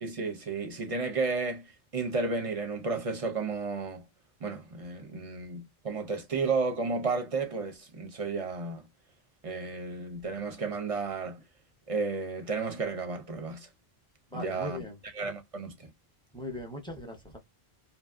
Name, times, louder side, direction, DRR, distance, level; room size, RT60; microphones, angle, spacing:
voice 1, 0.0-4.0 4.4-8.9 9.4-11.4 11.9-13.7 14.3-14.8 15.1-15.9, right 4 dB, 45° right, 0.5 m, -33 dB
voice 2, 14.3-15.0 16.3-17.4, left 1 dB, 5° left, 0.7 m, -39 dB
2.7 x 2.6 x 2.4 m
omnidirectional pair, 1.1 m